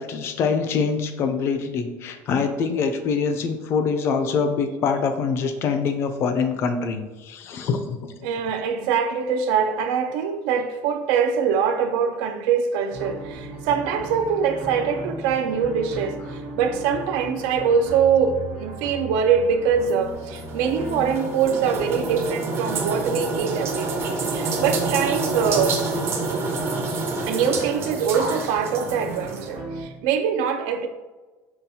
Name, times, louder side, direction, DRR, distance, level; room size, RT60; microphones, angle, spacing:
voice 1, 0.0-8.0, left 5 dB, 40° left, 0.3 m, -24 dB
voice 2, 8.2-24.0 24.3-25.8 27.2-30.9, right 6 dB, 90° right, 0.4 m, -23 dB
sound 1, 12.9-29.8, right 2 dB, 65° right, 1.1 m, -37 dB
sound 2, 19.9-29.5, right 3 dB, 35° right, 0.5 m, -28 dB
5.6 x 2.3 x 2.7 m
cardioid pair, 170°, 7 cm